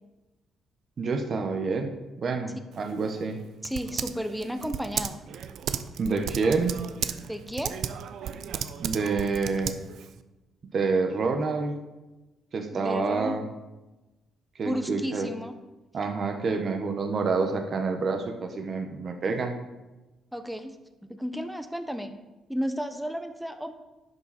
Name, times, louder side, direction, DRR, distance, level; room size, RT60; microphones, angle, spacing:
voice 1, 1.0-1.9 2.2-3.4 6.0-6.8 8.8-9.8 10.7-11.8 12.5-13.5 14.6-15.3 15.9-19.5, right 4 dB, 50° right, 4 dB, 1.2 m, -28 dB
Typing, 2.7-10.2, right 9 dB, 75° right, 0.5 m, -35 dB
voice 2, 3.6-5.2 7.3-7.8 12.7-13.4 14.6-15.5 20.3-20.8 21.0-22.1 22.5-23.7, equal, ahead, 8 dB, 0.8 m, -33 dB
10.5 x 6.0 x 4.2 m, 1.1 s
cardioid pair, 90°, 0 cm